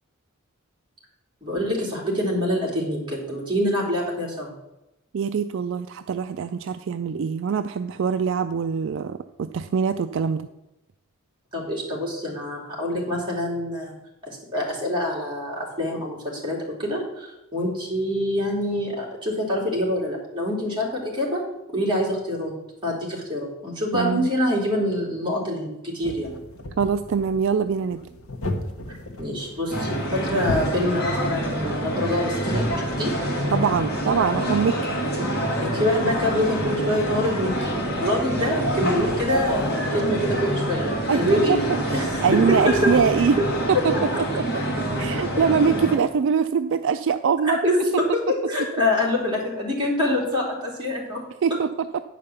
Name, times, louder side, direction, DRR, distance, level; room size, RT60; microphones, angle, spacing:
voice 1, 1.4-4.5 11.5-13.9 14.5-21.4 21.7-22.5 22.8-26.4 28.9-32.7 33.0-33.1 35.6-41.6 41.9-42.9 43.4-43.5 43.7-43.8 47.4-51.2, left 1 dB, 20° right, -5 dB, 3.0 m, -25 dB
voice 2, 5.1-10.5 23.9-24.3 26.8-28.0 33.5-34.8 41.1-41.6 41.9-43.4 43.7-43.9 45.0-47.6 51.4-52.0, right 6 dB, 60° right, 9 dB, 0.3 m, -23 dB
sound 1, 26.0-31.6, left 1 dB, 70° left, 1.0 m, -34 dB
sound 2, 29.7-46.0, right 1 dB, 50° left, 2.1 m, -26 dB
9.8 x 5.1 x 6.9 m, 0.95 s
head